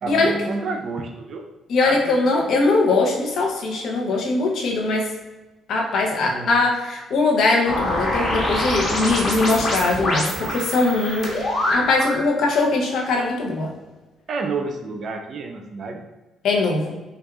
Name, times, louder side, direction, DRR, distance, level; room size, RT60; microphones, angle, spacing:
voice 1, 0.0-1.5 1.8-2.6 6.2-6.5 14.3-16.1, right 4 dB, 55° right, 5 dB, 0.4 m, -30 dB
voice 2, 1.7-5.1 5.7-11.3 11.7-13.7 16.4-17.0, left 3 dB, 70° left, 0 dB, 0.7 m, -21 dB
sound 1, 7.6-12.2, left 1 dB, 45° left, 1.2 m, -25 dB
4.5 x 2.3 x 2.3 m, 1.1 s
supercardioid pair, 70°, 0 cm